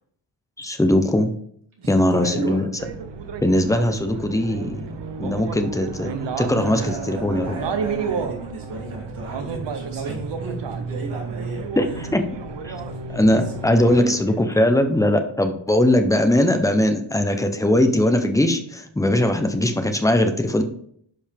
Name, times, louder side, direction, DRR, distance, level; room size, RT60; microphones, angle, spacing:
voice 1, 0.6-1.3 1.9-2.7 3.4-4.8 5.2-7.6 11.8-12.2 12.6-12.7 13.1-20.6, left 1 dB, 5° left, 6 dB, 0.7 m, -20 dB
voice 2, 1.8-2.6 6.5-12.1 12.7-12.9 13.5-14.6, right 3 dB, 80° right, -3 dB, 3.0 m, -35 dB
sound 1, 2.8-14.0, right 5 dB, 60° right, 0.9 m, -31 dB
10.5 x 5.3 x 3.4 m, 0.64 s
wide cardioid pair, 170°, 48 cm